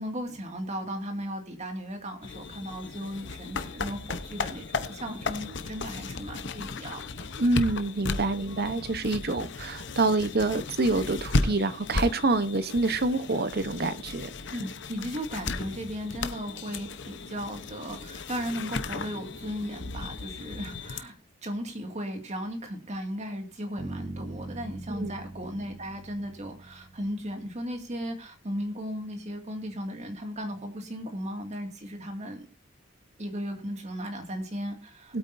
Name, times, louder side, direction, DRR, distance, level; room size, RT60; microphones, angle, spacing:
voice 1, 0.0-7.2 14.5-21.1 21.4-32.5 33.2-35.2, equal, 35° right, 2.2 m, -36 dB
sound 1, 2.2-21.0, left 3 dB, 60° left, 0.9 m, -35 dB
voice 2, 7.4-14.3 25.0-25.1 35.1-35.2, right 2 dB, 50° right, 1.0 m, -27 dB
Bass guitar, 23.8-27.7, right 1 dB, 75° right, 4.2 m, -42 dB
20.5 x 8.5 x 2.7 m
head